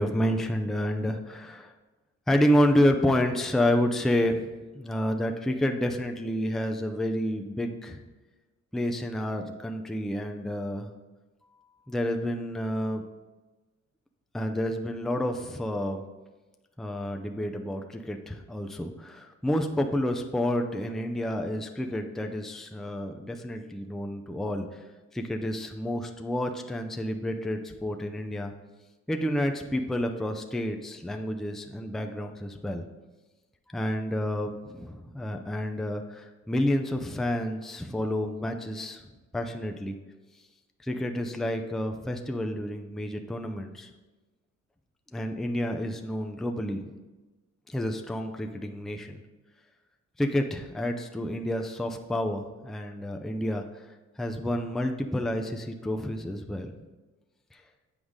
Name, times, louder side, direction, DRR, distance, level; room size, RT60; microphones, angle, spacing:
voice 1, 0.0-1.7 2.3-8.0 8.7-10.9 11.9-13.0 14.3-16.0 16.8-24.8 25.1-28.5 29.1-32.8 33.7-39.0 39.3-39.9 40.8-43.9 45.1-46.9 47.7-49.2 50.2-53.9 54.2-56.7 57.5-57.6, left 1 dB, ahead, 4 dB, 0.5 m, -29 dB
8.1 x 4.9 x 3.6 m, 1.2 s
cardioid pair, 90°, 30 cm